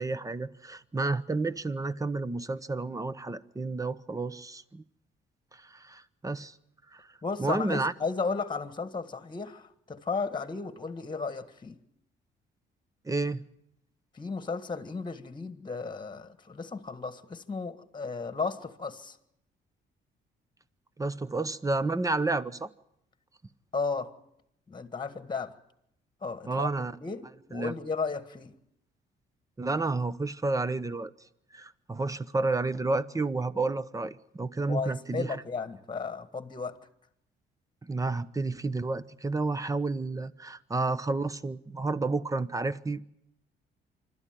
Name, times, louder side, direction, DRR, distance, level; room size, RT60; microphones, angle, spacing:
voice 1, 0.0-4.8 5.5-6.5 6.9-7.1 7.4-7.9 13.0-13.5 21.0-22.7 26.5-27.0 27.5-27.7 29.6-31.1 31.5-35.4 37.8-43.0, right 3 dB, 15° right, 0.9 m, -31 dB
voice 2, 7.2-11.8 14.1-19.2 23.7-24.1 24.7-25.6 26.2-26.7 27.0-28.5 34.7-36.8, left 4 dB, 25° left, 1.7 m, -34 dB
26.5 x 12.5 x 9.2 m
cardioid pair, 90°, 20 cm